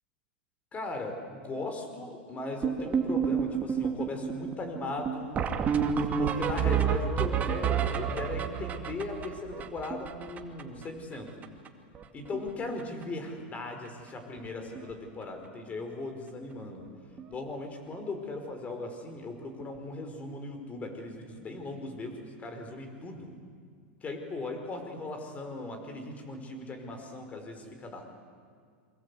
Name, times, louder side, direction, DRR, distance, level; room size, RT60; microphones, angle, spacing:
voice 1, 0.7-5.3 6.0-11.3 12.1-16.9 17.3-23.3 24.0-28.1, left 2 dB, 25° left, 6 dB, 4.9 m, -38 dB
sound 1, 2.6-10.8 11.1-11.2 11.4-11.7 12.0-12.5 12.8-13.0 13.9-14.0 14.4-14.5 14.8-14.9 17.2-17.3 19.6-19.7, right 7 dB, 25° right, 2.2 m, -30 dB
28.0 x 24.0 x 8.5 m, 2.1 s
supercardioid pair, 130°, 6 cm